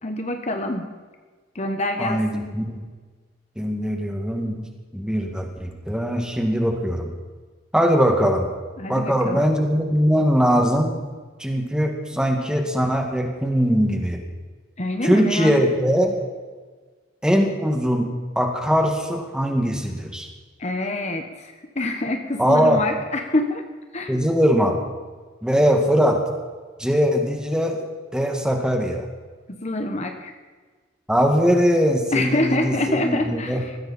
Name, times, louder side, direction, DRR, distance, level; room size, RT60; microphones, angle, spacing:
voice 1, 0.0-0.9 1.5-2.5 8.8-9.4 14.8-15.5 20.6-23.6 23.9-24.1 29.5-30.3 32.1-33.8, left 2 dB, 35° left, 5 dB, 1.2 m, -26 dB
voice 2, 2.0-2.8 3.6-4.7 4.9-7.1 7.7-8.5 8.9-10.9 11.4-14.2 15.0-16.2 17.2-18.1 18.4-20.3 22.4-22.8 24.1-24.8 25.4-26.2 26.8-27.8 28.1-29.1 31.1-33.6, equal, 5° right, 2 dB, 2.1 m, -21 dB
21.0 x 15.5 x 4.3 m, 1.4 s
head